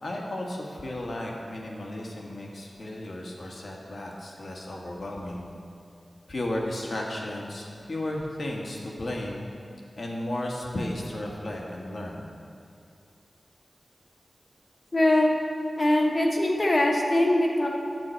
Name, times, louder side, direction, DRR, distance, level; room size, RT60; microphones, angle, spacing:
voice 1, 0.0-5.5 6.3-9.4 10.0-12.3, left 1 dB, 60° left, -1 dB, 1.4 m, -34 dB
voice 2, 14.9-15.3 15.8-17.7, left 1 dB, 40° left, -1 dB, 1.3 m, -22 dB
9.5 x 7.7 x 4.4 m, 2.4 s
wide cardioid pair, 80°, 0 cm